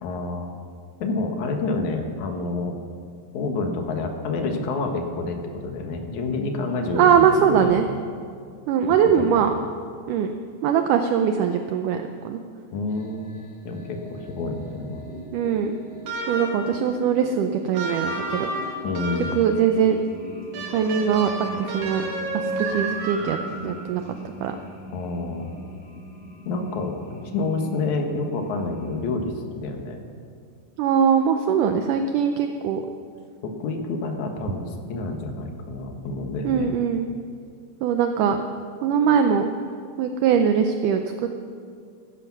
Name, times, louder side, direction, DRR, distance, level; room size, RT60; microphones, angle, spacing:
voice 1, 0.0-0.5 1.0-2.8 3.3-7.8 9.1-9.5 12.7-13.3 13.6-15.0 18.8-19.3 24.9-25.5 26.4-27.0 27.3-30.0 33.4-36.7, left 3 dB, 60° left, 4 dB, 2.6 m, -28 dB
voice 2, 7.0-7.9 8.7-9.5 10.1-10.3 10.6-12.4 15.3-15.7 16.3-18.5 19.4-20.0 20.7-22.0 22.3-23.4 23.6-24.0 24.4-24.6 30.8-32.8 36.4-37.1 37.8-38.5 38.8-39.5 40.0-41.3, right 7 dB, 75° right, 6 dB, 2.1 m, -21 dB
sound 1, 12.9-29.0, right 1 dB, 15° left, 2.9 m, -41 dB
sound 2, 16.1-16.8 17.7-19.6 20.5-23.7, right 2 dB, 60° right, 3.4 m, -31 dB
15.0 x 15.0 x 6.0 m, 2.2 s
omnidirectional pair, 4.1 m